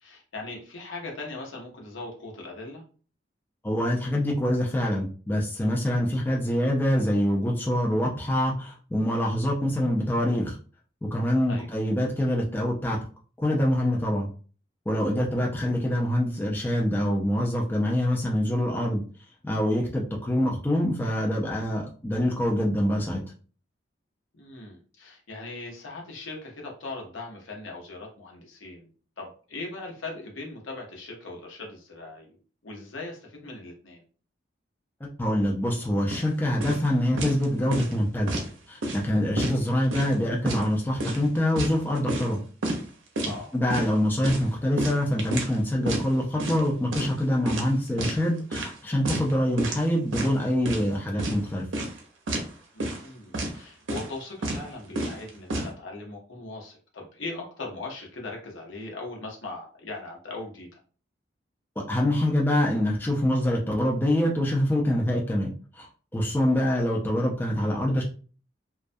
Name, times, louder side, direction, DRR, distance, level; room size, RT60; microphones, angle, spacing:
voice 1, 0.0-2.8 11.5-11.7 24.3-28.9 29.2-32.4 32.6-34.0 43.2-43.5 52.7-60.8, left 2 dB, 90° left, 0 dB, 0.8 m, -39 dB
voice 2, 3.6-10.6 11.1-13.0 13.4-14.3 14.9-19.0 19.4-23.2 35.2-38.4 38.7-42.4 43.5-51.7 61.9-65.9 66.1-68.0, left 1 dB, 10° left, -2 dB, 0.3 m, -25 dB
sound 1, 36.1-36.3 36.6-36.9 37.2-37.4 37.7-38.5 38.8-39.1 39.4-40.1 40.5-40.7 41.0-42.3 42.6-42.8 43.2-43.4 43.7-43.9 44.2-45.6 45.9-46.1 46.4-46.7 46.9-47.2 47.5-48.2 48.5-48.7 49.0-49.3 49.6-49.8 50.1-50.9 51.2-51.4 51.7-52.0 52.3-52.5 52.8-53.1 53.3-53.5 53.9-54.2 54.4-54.7 55.0-55.7, right 1 dB, 85° right, 0.6 m, -30 dB
2.3 x 2.1 x 2.5 m, 0.40 s
head